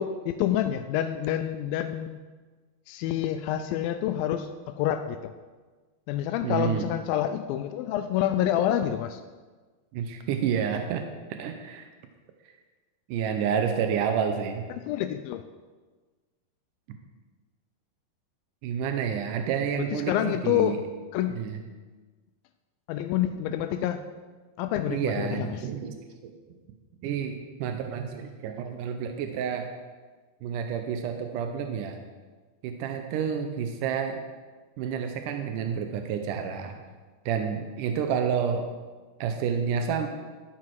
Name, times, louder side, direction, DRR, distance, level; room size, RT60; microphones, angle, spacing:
voice 1, 0.0-2.2 2.9-4.5 4.8-5.3 6.1-9.2 14.8-15.4 19.8-20.8 21.1-21.4 22.9-24.0 24.6-25.6, left 11 dB, 90° left, 9 dB, 2.0 m, -27 dB
voice 2, 6.4-6.9 9.9-11.0 11.3-11.9 13.1-14.6 18.6-20.8 21.3-21.6 24.7-26.0 26.2-26.3 27.0-29.7 30.4-32.0 32.6-34.2 34.8-36.7 37.3-38.7 39.2-40.1, right 7 dB, 80° right, 6 dB, 1.9 m, -29 dB
12.5 x 10.5 x 4.7 m, 1.4 s
omnidirectional pair, 4.7 m